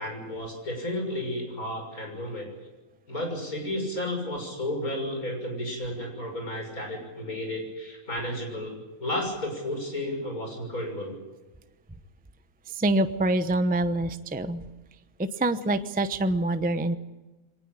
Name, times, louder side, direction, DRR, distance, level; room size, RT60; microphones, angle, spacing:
voice 1, 0.0-2.5 3.1-11.2, left 1 dB, 70° left, 3 dB, 6.9 m, -32 dB
voice 2, 12.7-14.6 15.2-16.9, right 1 dB, 10° right, 10 dB, 0.6 m, -25 dB
23.0 x 19.0 x 8.8 m, 1.1 s
omnidirectional pair, 1.6 m